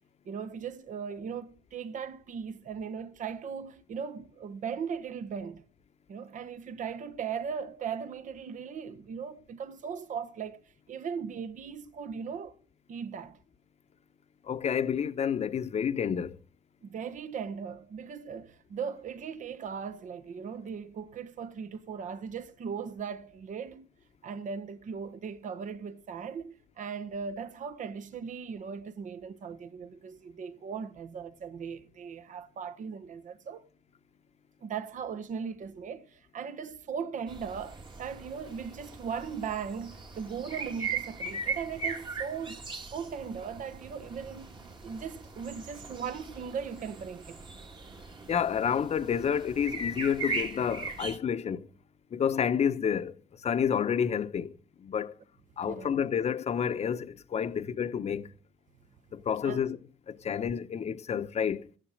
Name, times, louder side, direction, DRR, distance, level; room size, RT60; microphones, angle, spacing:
voice 1, 0.2-5.6 6.1-10.6 10.9-12.5 12.9-13.4 16.8-23.9 24.2-33.6 34.6-42.6 42.9-44.6 44.8-47.4 55.7-56.0 59.4-59.6, right 6 dB, 50° right, 1.2 m, -38 dB
voice 2, 14.4-16.4 48.3-51.7 52.1-55.2 55.6-58.3 59.1-59.8 60.1-61.7, left 7 dB, 40° left, 1.0 m, -29 dB
sound 1, 37.3-51.2, right 4 dB, 30° right, 1.8 m, -39 dB
14.5 x 10.0 x 6.4 m
cardioid pair, 110°, 17 cm